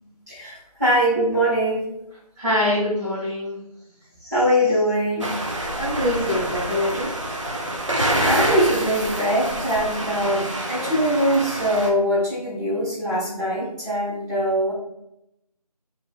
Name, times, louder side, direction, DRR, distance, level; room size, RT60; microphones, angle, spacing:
voice 1, 0.3-1.8 4.2-5.3 8.2-14.7, equal, 25° right, -12 dB, 1.3 m, -22 dB
voice 2, 2.4-3.6 5.8-7.1, left 1 dB, 15° left, -16 dB, 0.9 m, -24 dB
sound 1, 5.2-11.9, right 1 dB, 50° right, 0.5 m, -27 dB
2.7 x 2.7 x 2.4 m, 0.83 s
figure-of-eight pair, 175°, 20 cm